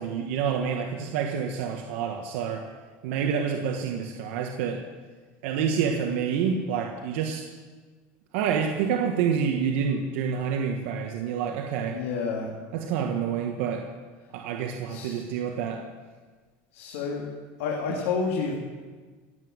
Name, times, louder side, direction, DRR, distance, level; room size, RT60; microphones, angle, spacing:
voice 1, 0.0-2.6 3.0-4.8 5.4-7.4 8.3-12.0 12.7-13.8 14.3-15.8, right 7 dB, 75° right, 3 dB, 1.4 m, -28 dB
voice 2, 11.9-12.5 14.9-15.2 16.7-17.2 17.6-18.5, left 5 dB, 85° left, -1 dB, 2.7 m, -29 dB
17.0 x 8.2 x 7.9 m, 1.4 s
supercardioid pair, 150°, 7 cm